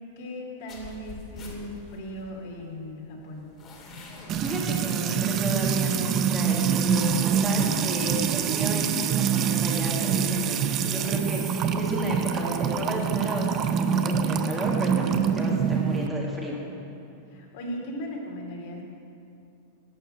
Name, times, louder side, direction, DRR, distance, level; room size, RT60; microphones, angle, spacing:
voice 1, 0.2-3.5 17.3-18.8, equal, 60° left, -1 dB, 2.8 m, -37 dB
sound 1, 0.7-7.4, left 3 dB, 30° left, 2.2 m, -46 dB
Music / Water tap faucet / Trickle dribble, 4.3-16.1, right 7 dB, 30° right, 0.6 m, -25 dB
voice 2, 4.4-15.1 15.3-16.6, equal, 10° right, -3 dB, 1.8 m, -33 dB
11.5 x 7.1 x 7.7 m, 2.6 s
supercardioid pair, 150°, 0 cm